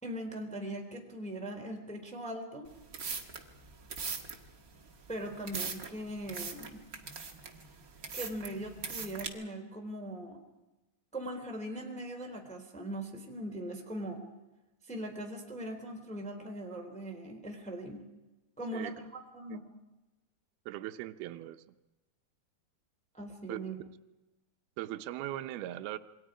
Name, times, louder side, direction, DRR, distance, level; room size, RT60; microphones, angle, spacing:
voice 1, 0.0-2.7 5.1-6.8 8.1-10.4 11.1-14.2 14.9-18.1 18.6-19.6 23.1-23.7, right 1 dB, ahead, 2 dB, 2.9 m, -40 dB
sound 1, 2.6-9.3, right 5 dB, 50° right, 1.0 m, -41 dB
voice 2, 20.7-21.6 23.5-23.6 23.9-24.0 24.8-26.0, right 14 dB, 80° right, 8 dB, 2.7 m, -39 dB
27.5 x 24.0 x 5.0 m, 1.0 s
omnidirectional pair, 4.5 m